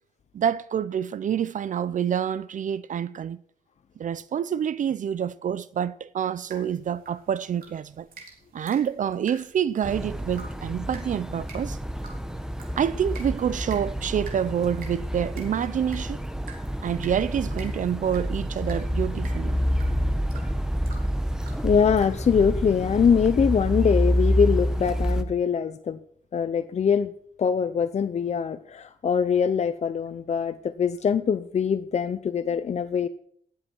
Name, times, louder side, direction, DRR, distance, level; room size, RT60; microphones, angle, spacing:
voice 1, 0.3-3.4 4.0-8.1 8.5-11.8 12.8-16.2 16.8-19.6, right 8 dB, 60° right, 0.5 m, -27 dB
sound 1, 6.5-22.4, right 4 dB, 80° right, 3.6 m, -50 dB
sound 2, 9.8-25.2, equal, 5° right, 1.0 m, -28 dB
voice 2, 21.6-26.0 26.3-27.1 27.4-33.1, left 7 dB, 50° left, 0.7 m, -23 dB
19.0 x 7.8 x 4.5 m
wide cardioid pair, 110°, 15 cm